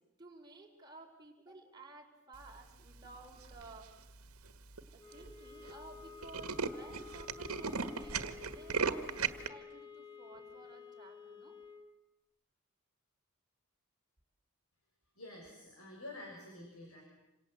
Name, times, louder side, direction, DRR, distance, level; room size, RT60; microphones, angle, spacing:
voice 1, 0.2-3.9 4.9-11.6, right 2 dB, 20° right, 0 dB, 4.4 m, -55 dB
Tools, 3.4-3.8 4.4-4.5 4.8-4.9 5.1-5.3 5.6-5.7 6.0-9.5, right 5 dB, 85° right, 1.7 m, -36 dB
sound 1, 5.0-12.0, left 5 dB, 20° left, 1.7 m, -52 dB
voice 2, 15.2-17.0, left 2 dB, 75° left, 0 dB, 6.7 m, -49 dB
27.5 x 27.0 x 8.0 m, 0.92 s
head